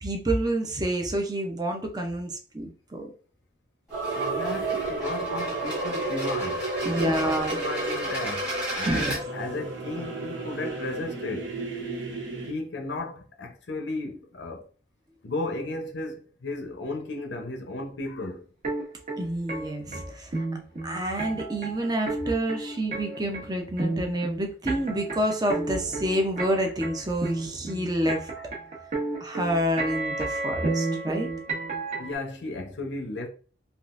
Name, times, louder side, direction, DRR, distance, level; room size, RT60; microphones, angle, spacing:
voice 1, 0.0-3.1 6.8-7.6 8.8-9.1 19.2-20.4 20.8-28.3 29.2-31.3, right 1 dB, 20° right, 0.5 m, -28 dB
sound 1, 3.9-9.2, right 1 dB, 5° right, 1.2 m, -34 dB
sound 2, 3.9-12.5, right 3 dB, 65° right, 0.8 m, -32 dB
voice 2, 4.2-11.5 12.5-14.7 15.2-18.5 26.6-26.7 28.4-28.5 32.0-33.3, left 2 dB, 65° left, 0.6 m, -35 dB
sound 3, 18.6-32.1, right 3 dB, 35° right, 0.9 m, -32 dB
3.5 x 2.4 x 2.4 m
head